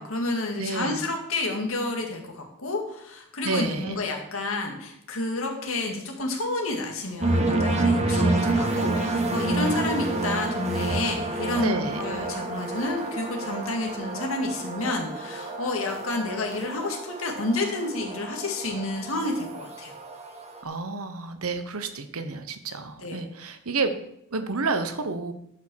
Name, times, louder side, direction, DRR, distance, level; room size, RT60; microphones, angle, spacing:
voice 1, 0.0-19.9 23.0-23.2, left 2 dB, 70° left, 2 dB, 2.3 m, -30 dB
voice 2, 0.6-1.0 3.4-4.0 11.6-12.0 20.6-25.3, right 3 dB, 85° right, 9 dB, 1.1 m, -30 dB
sound 1, 7.2-20.6, right 2 dB, 30° right, 1.4 m, -28 dB
10.5 x 6.0 x 6.4 m, 0.76 s
head